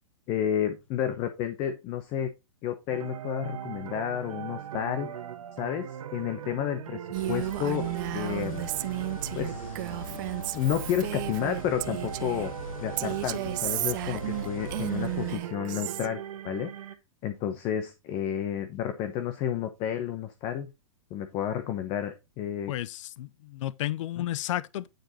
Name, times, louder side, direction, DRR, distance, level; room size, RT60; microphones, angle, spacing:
voice 1, 0.3-2.3 2.6-5.1 5.6-7.0 7.3-8.7 9.3-10.1 10.5-12.5 12.8-16.7 17.2-20.7 21.1-22.7 24.2-24.3, left 10 dB, 30° left, 0.9 m, -31 dB
sound 1, 2.9-17.0, right 9 dB, 85° right, 1.2 m, -40 dB
sound 2, 7.1-15.4, left 2 dB, 80° left, 2.1 m, -41 dB
Female speech woman speaking, 7.1-12.5 13.0-16.1, right 18 dB, 35° right, 0.4 m, -33 dB
voice 2, 22.7-24.9, left 14 dB, 65° left, 0.5 m, -32 dB
9.2 x 4.6 x 3.9 m
supercardioid pair, 160°, 17 cm